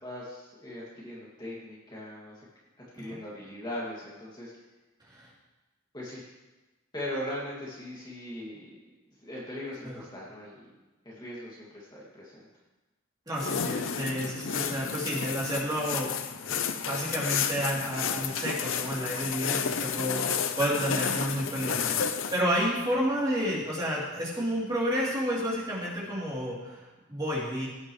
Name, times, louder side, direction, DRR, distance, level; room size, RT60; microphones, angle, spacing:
voice 1, 0.0-2.4 2.9-4.5 5.9-6.2 6.9-8.7 9.2-10.7 11.0-12.5 21.8-22.0, left 1 dB, 20° left, -6 dB, 2.3 m, -39 dB
voice 2, 13.3-16.1 16.8-27.7, equal, 20° right, -6 dB, 3.1 m, -31 dB
sound 1, 13.4-22.4, left 7 dB, 70° left, 0.6 m, -31 dB
17.0 x 9.6 x 3.2 m, 1.1 s
head